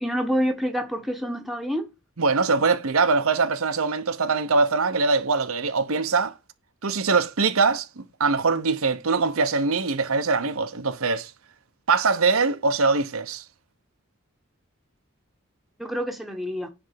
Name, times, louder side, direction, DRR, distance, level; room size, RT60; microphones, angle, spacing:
voice 1, 0.0-1.9 15.8-16.7, equal, ahead, 1.1 m, -27 dB
voice 2, 2.2-6.4 6.8-11.3 11.9-13.4, right 4 dB, 80° right, 0.9 m, -22 dB
10.0 x 3.5 x 6.8 m
head